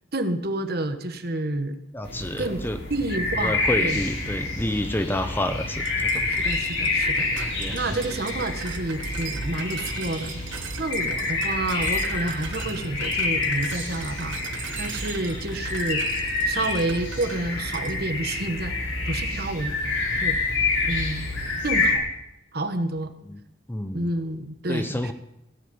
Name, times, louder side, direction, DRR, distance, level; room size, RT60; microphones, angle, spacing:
voice 1, 0.1-1.7 2.4-2.6 2.9-4.0 6.2-10.4 10.8-18.7 19.1-19.7 20.2-20.4 20.8-21.3 21.6-22.0 22.5-23.1 23.9-25.1, right 2 dB, 50° right, 8 dB, 1.3 m, -29 dB
voice 2, 1.9-2.8 3.4-6.3 7.4-8.0 23.3-23.4 23.7-24.1 24.7-25.1, left 1 dB, 10° left, 8 dB, 0.7 m, -29 dB
sound 1, 2.0-22.0, left 3 dB, 80° left, 6.7 m, -28 dB
sound 2, 5.8-17.4 17.7-18.0, right 7 dB, 80° right, 1.7 m, -40 dB
17.5 x 8.2 x 9.6 m, 0.87 s
head